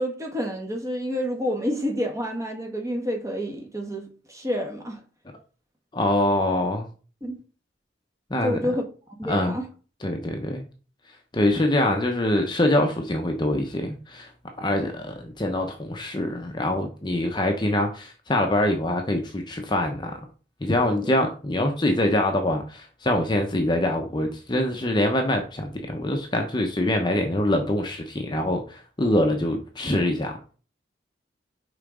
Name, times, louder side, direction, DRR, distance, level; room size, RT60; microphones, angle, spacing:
voice 1, 0.0-5.0 7.2-7.4 8.4-8.8 9.2-9.7 20.8-21.1, equal, 20° right, 1.3 m, -29 dB
voice 2, 5.9-6.9 8.3-8.6 9.3-9.5 10.0-10.6 11.3-14.3 14.6-20.2 20.6-30.4, left 1 dB, 25° left, 0.7 m, -24 dB
5.6 x 4.0 x 4.9 m
head